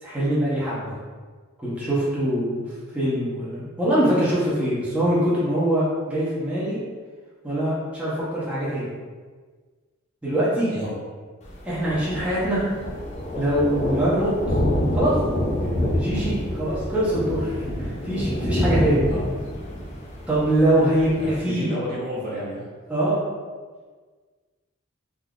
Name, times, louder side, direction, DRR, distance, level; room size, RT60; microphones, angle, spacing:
voice 1, 0.0-0.9 1.6-2.6 2.9-6.8 7.4-8.9 10.2-10.7 11.7-12.6 13.4-14.3 14.9-15.1 15.6-19.0 20.3-21.7 22.9-23.2, right 1 dB, 5° right, -10 dB, 0.7 m, -23 dB
Thunder, 11.4-21.4, left 1 dB, 35° left, 0.6 m, -27 dB
voice 2, 21.2-22.7, equal, 40° right, -6 dB, 0.7 m, -31 dB
3.6 x 2.6 x 2.3 m, 1.5 s
head